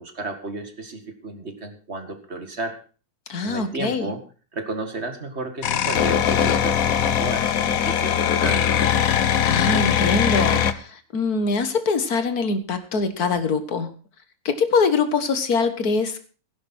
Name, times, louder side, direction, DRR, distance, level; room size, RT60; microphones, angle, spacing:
voice 1, 0.0-2.8 3.4-4.2 4.5-8.9, right 2 dB, 45° right, 7 dB, 2.3 m, -33 dB
voice 2, 3.3-4.1 9.5-13.9 14.5-16.2, left 4 dB, 85° left, 10 dB, 2.0 m, -23 dB
sound 1, 5.6-10.7, left 8 dB, 70° left, 1.4 m, -21 dB
16.5 x 10.5 x 4.4 m, 0.37 s
omnidirectional pair, 1.6 m